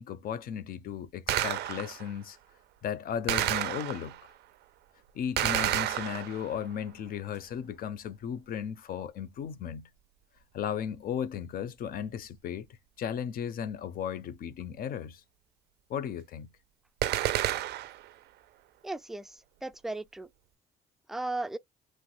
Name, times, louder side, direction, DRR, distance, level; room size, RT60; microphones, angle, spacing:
voice 1, 0.0-2.4 2.8-4.2 5.1-9.9 10.5-12.7 13.0-15.2 15.9-16.5, left 8 dB, 55° left, 0.5 m, -35 dB
Gunshot gunfire, 1.3-2.1 3.3-4.3 5.4-6.6 17.0-18.1, right 13 dB, 75° right, 0.4 m, -30 dB
voice 2, 18.8-20.3 21.1-21.6, right 2 dB, ahead, 0.3 m, -36 dB
3.0 x 2.1 x 3.0 m
cardioid pair, 105°, 17 cm